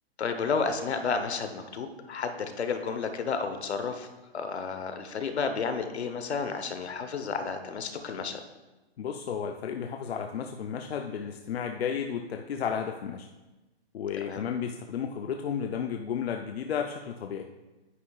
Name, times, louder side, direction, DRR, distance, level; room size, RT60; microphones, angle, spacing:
voice 1, 0.2-4.1 4.3-8.4 14.2-14.4, left 5 dB, 90° left, 7 dB, 1.1 m, -31 dB
voice 2, 9.0-13.3 13.9-17.5, left 7 dB, 70° left, 4 dB, 0.6 m, -33 dB
9.5 x 9.4 x 2.4 m, 1.1 s
hypercardioid pair, 170°, 32 cm